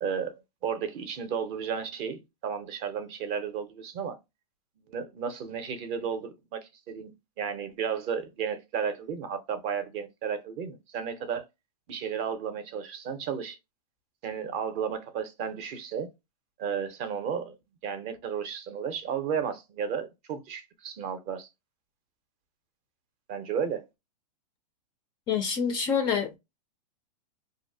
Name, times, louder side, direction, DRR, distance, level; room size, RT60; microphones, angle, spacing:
voice 1, 0.0-4.2 4.9-7.1 7.4-11.4 11.9-13.6 14.2-16.1 16.6-17.6 17.8-21.5 23.3-23.9, right 7 dB, 30° right, 0.5 m, -33 dB
voice 2, 25.3-26.4, left 6 dB, 20° left, 0.3 m, -27 dB
2.6 x 2.0 x 2.5 m
hypercardioid pair, 140°, 21 cm